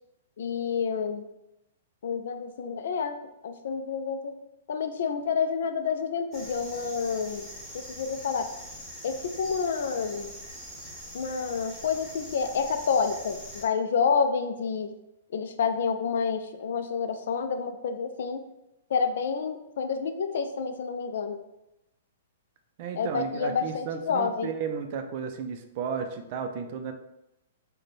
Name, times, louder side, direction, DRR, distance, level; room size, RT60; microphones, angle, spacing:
voice 1, 0.4-1.2 2.0-3.2 3.4-4.4 4.7-7.5 7.7-8.5 9.0-10.3 11.1-14.9 15.3-18.4 18.9-21.4 23.0-24.5, left 6 dB, 70° left, 8 dB, 0.4 m, -29 dB
sound 1, 6.3-13.6, equal, 15° right, 1.0 m, -43 dB
voice 2, 22.8-26.9, right 6 dB, 45° right, 6 dB, 0.4 m, -33 dB
3.3 x 2.2 x 4.1 m, 0.88 s
hypercardioid pair, 150°, 0 cm